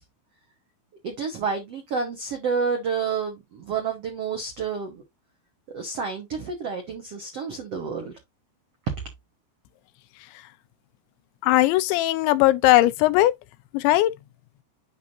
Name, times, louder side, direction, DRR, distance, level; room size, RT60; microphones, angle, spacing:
voice 1, 1.0-5.0 5.7-8.1, right 5 dB, 85° right, 1.3 m, -29 dB
voice 2, 11.4-13.3 13.7-14.1, left 16 dB, 85° left, 3.0 m, -19 dB
8.6 x 5.5 x 2.7 m
omnidirectional pair, 5.2 m